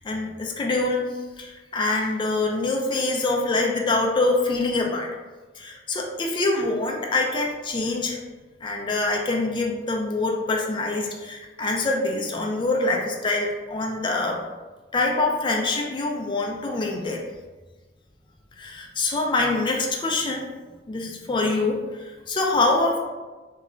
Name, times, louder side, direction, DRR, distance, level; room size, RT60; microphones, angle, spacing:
voice 1, 0.0-5.1 5.5-8.2 8.6-14.4 14.9-17.2 18.6-20.4 20.9-23.0, left 2 dB, 30° left, 0 dB, 0.4 m, -25 dB
2.3 x 2.1 x 3.7 m, 1.2 s
head